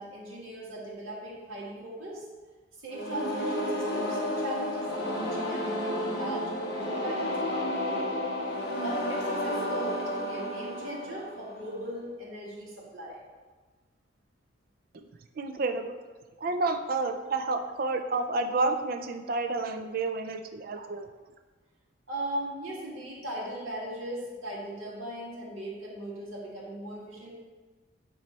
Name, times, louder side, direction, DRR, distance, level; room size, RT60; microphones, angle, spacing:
voice 1, 0.0-2.3 2.8-8.1 8.5-13.2 22.1-27.4, right 1 dB, 80° right, -5 dB, 2.0 m, -38 dB
sound 1, 2.9-11.8, left 1 dB, 50° left, 1.1 m, -32 dB
voice 2, 15.4-16.0 16.4-21.1, right 3 dB, 45° right, 6 dB, 0.4 m, -30 dB
8.9 x 3.2 x 4.3 m, 1.3 s
head